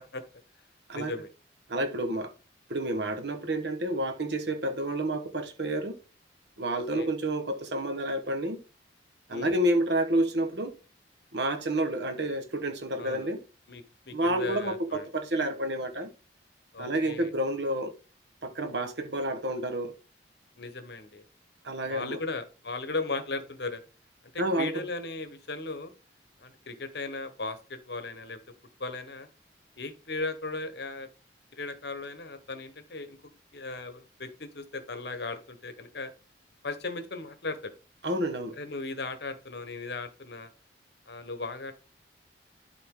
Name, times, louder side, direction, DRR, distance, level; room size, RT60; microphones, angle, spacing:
voice 1, 0.9-1.3 6.7-7.1 9.3-9.5 13.0-13.3 13.7-15.0 16.7-17.3 20.6-21.2 21.9-23.8 24.3-25.9 26.4-28.4 28.8-29.3 29.8-31.1 31.5-33.2 33.5-36.1 36.6-37.7 38.6-40.5 41.1-41.7, left 3 dB, 60° left, 1.1 m, -37 dB
voice 2, 1.7-2.3 2.7-6.0 6.6-8.6 9.3-10.7 11.3-13.4 14.1-16.1 16.8-17.9 18.4-20.0 21.6-22.2 24.4-24.8 38.0-38.5, right 1 dB, 65° right, 1.4 m, -29 dB
12.0 x 4.0 x 3.8 m
head